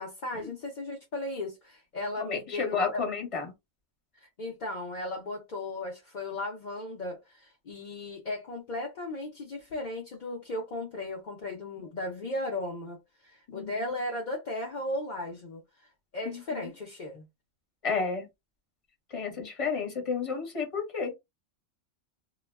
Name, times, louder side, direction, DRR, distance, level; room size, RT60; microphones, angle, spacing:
voice 1, 0.0-3.0 4.2-15.6 16.1-17.3, left 2 dB, 45° left, 0.6 m, -36 dB
voice 2, 2.2-3.5 13.5-13.9 16.2-16.7 17.8-18.2 19.1-21.1, left 5 dB, 25° left, 0.9 m, -32 dB
2.3 x 2.1 x 3.2 m
omnidirectional pair, 1.4 m